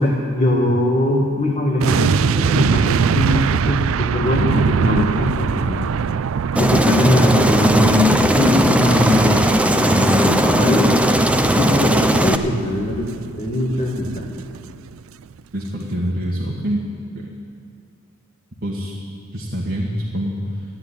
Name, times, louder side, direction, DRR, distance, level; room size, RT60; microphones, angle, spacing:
voice 1, 0.0-5.9 6.6-10.9 11.5-13.1 13.4-14.3, left 1 dB, 35° left, -2 dB, 1.7 m, -21 dB
sound 1, 1.8-14.9 15.2-15.4, right 6 dB, 75° right, 0.4 m, -23 dB
Aircraft, 6.6-12.4, right 1 dB, 5° right, 0.6 m, -17 dB
voice 2, 12.9-13.3 15.5-16.8 17.1-17.3 18.6-18.9 19.3-20.6, equal, 50° right, -3 dB, 1.7 m, -26 dB
14.5 x 9.0 x 9.9 m, 2.4 s
head